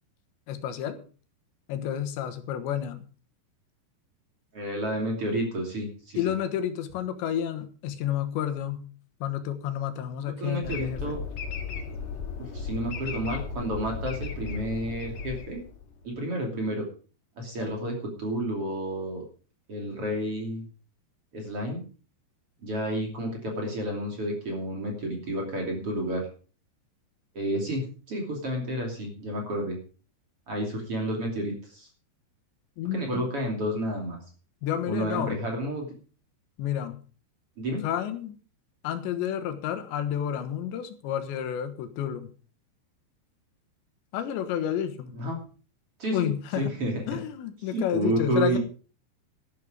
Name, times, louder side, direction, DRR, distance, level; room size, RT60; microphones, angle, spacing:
voice 1, 0.5-1.0 1.7-3.0 6.2-8.8 9.2-11.2 32.8-33.2 34.6-35.4 36.6-36.9 37.8-38.4 38.8-42.3 44.1-45.1 46.1-46.7 47.1-48.6, left 10 dB, 80° left, 9 dB, 3.5 m, -30 dB
voice 2, 4.5-6.3 10.2-11.2 12.4-15.6 16.0-16.9 17.4-19.2 19.7-20.7 21.3-21.8 22.6-26.3 27.3-29.8 30.5-31.9 32.9-34.2 34.9-35.9 37.6-37.8 45.1-45.4 46.0-46.3 46.5-47.2 47.7-48.6, right 1 dB, 35° right, 1 dB, 3.3 m, -30 dB
sound 1, 10.6-16.0, left 4 dB, 50° left, 2.3 m, -35 dB
12.5 x 12.0 x 5.0 m, 0.38 s
omnidirectional pair, 5.1 m